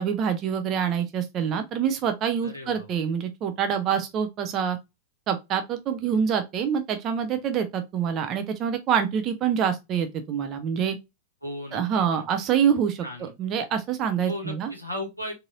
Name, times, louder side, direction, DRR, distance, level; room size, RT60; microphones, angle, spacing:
voice 1, 0.0-4.8 5.3-11.0 11.7-14.7, right 8 dB, 35° right, 0.5 m, -26 dB
voice 2, 2.4-2.9 11.4-11.8 12.1-12.2 13.0-13.3 14.3-15.3, left 1 dB, 90° right, 1.2 m, -35 dB
3.9 x 2.7 x 2.4 m
figure-of-eight pair, 90°, 0 cm